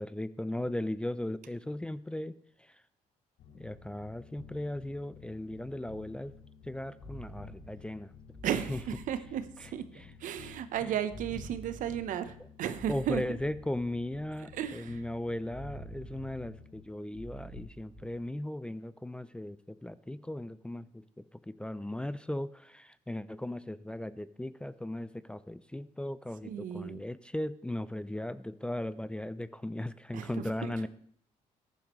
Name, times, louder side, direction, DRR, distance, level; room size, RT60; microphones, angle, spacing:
voice 1, 0.0-2.8 3.5-6.3 6.6-8.1 8.7-8.8 9.6-9.7 10.0-10.1 10.4-10.5 10.8-10.9 12.9-30.9, left 1 dB, 5° left, 16 dB, 0.4 m, -37 dB
sound 1, 3.4-16.8, left 7 dB, 70° left, 1.1 m, -54 dB
sound 2, 7.0-7.9 8.3-9.6 11.1-12.2 12.7-14.0 15.5-16.6 17.1-18.3, right 1 dB, 35° left, 4.7 m, -48 dB
voice 2, 8.4-9.8 10.2-13.2 14.5-15.0 26.4-27.0 30.1-30.7, right 10 dB, 70° right, 11 dB, 0.9 m, -34 dB
14.5 x 10.5 x 3.1 m, 0.63 s
cardioid pair, 85°, 14 cm